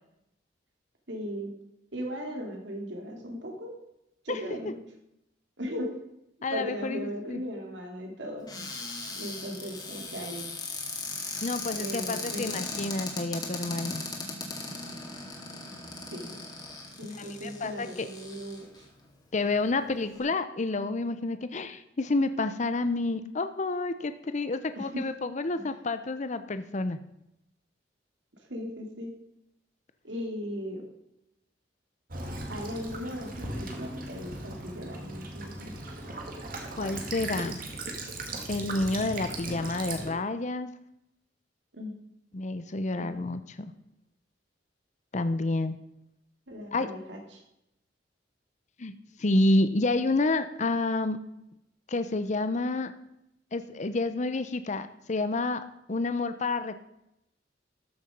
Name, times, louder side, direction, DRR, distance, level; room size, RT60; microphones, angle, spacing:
voice 1, 1.1-1.5 1.9-3.8 4.2-4.8 5.6-5.9 6.5-8.5 9.1-10.5 11.7-12.8 16.1-16.3 17.0-18.8 24.8-25.0 25.5-25.7 28.5-29.1 30.0-30.8 32.5-35.7 41.7-41.9 43.0-43.2 46.5-47.4, equal, 75° right, 1 dB, 2.9 m, -37 dB
voice 2, 6.4-7.4 11.4-14.0 17.2-18.1 19.3-27.0 36.8-37.6 38.5-40.7 42.3-43.7 45.1-45.8 46.7-46.9 48.8-48.9 49.2-51.2 51.9-52.9 53.5-56.8, left 2 dB, 40° left, 11 dB, 0.7 m, -29 dB
Cupboard open or close, 8.5-18.8 19.5-19.6 19.8-20.2, left 3 dB, 25° left, 2.3 m, -38 dB
Child speech kid speaking / Bird vocalization bird call bird song / Stream, 32.1-40.1, right 2 dB, 50° right, 2.1 m, -38 dB
13.5 x 7.0 x 5.2 m, 0.82 s
head